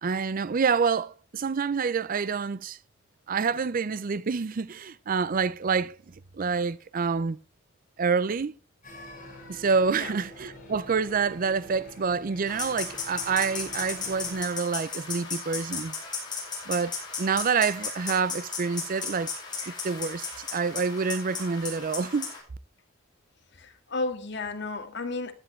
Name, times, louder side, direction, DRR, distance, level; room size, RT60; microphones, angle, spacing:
voice 1, 0.0-2.8 3.3-7.4 8.0-8.5 9.5-15.9 16.7-19.3 19.7-22.3, right 5 dB, 45° right, 0.5 m, -27 dB
sound 1, 8.8-14.4, left 1 dB, 45° left, 7.6 m, -46 dB
sound 2, 12.5-22.4, left 5 dB, 20° left, 5.9 m, -36 dB
voice 2, 23.6-25.3, left 3 dB, 60° left, 1.9 m, -33 dB
15.5 x 11.0 x 3.2 m
head